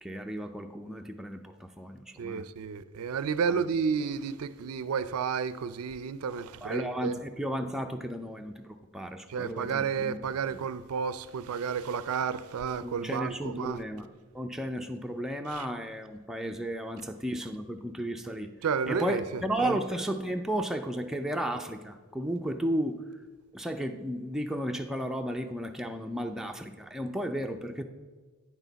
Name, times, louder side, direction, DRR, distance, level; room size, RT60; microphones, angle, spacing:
voice 1, 0.0-2.4 3.5-3.6 6.6-10.2 10.5-10.6 12.8-14.1 14.3-18.5 18.9-23.0 23.5-27.8, equal, ahead, 0.4 m, -34 dB
voice 2, 2.2-7.2 9.3-13.8 15.5-15.7 18.6-19.8, right 6 dB, 90° right, 0.4 m, -31 dB
9.0 x 6.3 x 4.0 m
head